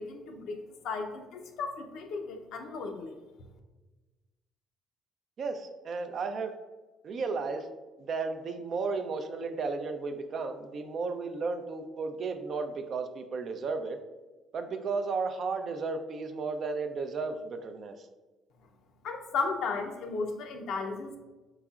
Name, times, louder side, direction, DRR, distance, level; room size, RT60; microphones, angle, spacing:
voice 1, 0.0-3.1 19.0-21.2, left 4 dB, 70° left, 4 dB, 0.6 m, -35 dB
voice 2, 5.4-6.5 7.0-7.7 8.0-14.0 14.5-18.0, right 4 dB, 50° right, 7 dB, 0.5 m, -34 dB
4.7 x 4.0 x 2.4 m, 1.2 s
cardioid pair, 105°, 0 cm